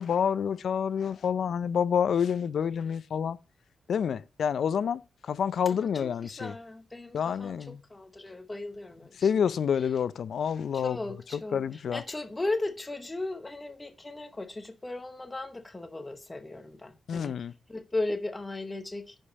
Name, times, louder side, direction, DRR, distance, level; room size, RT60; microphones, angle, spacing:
voice 1, 0.0-3.4 3.9-6.5 7.1-7.8 9.2-11.0 11.3-12.0 17.1-17.5, left 7 dB, 65° left, 0.5 m, -28 dB
voice 2, 5.6-9.3 10.7-17.4 17.7-19.2, left 2 dB, 15° left, 0.8 m, -36 dB
10.0 x 5.2 x 4.1 m
wide cardioid pair, 180°, 0 cm